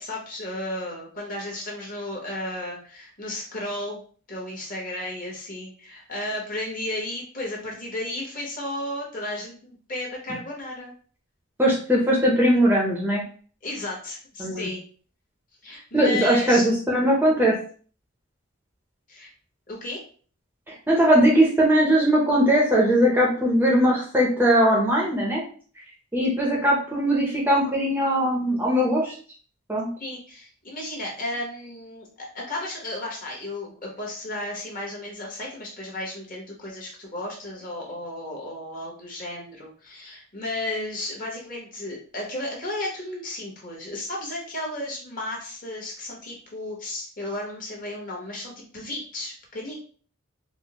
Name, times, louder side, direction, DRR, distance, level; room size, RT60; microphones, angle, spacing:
voice 1, 0.0-4.0 4.3-10.9 13.6-14.8 15.6-16.7 19.1-19.3 19.7-20.0 30.0-49.8, left 1 dB, 40° left, -2 dB, 1.1 m, -34 dB
voice 2, 11.6-13.2 14.4-14.6 15.9-17.6 20.7-25.4 26.1-29.1 29.7-29.9, equal, 10° right, -3 dB, 0.6 m, -20 dB
4.2 x 2.0 x 2.9 m, 0.43 s
head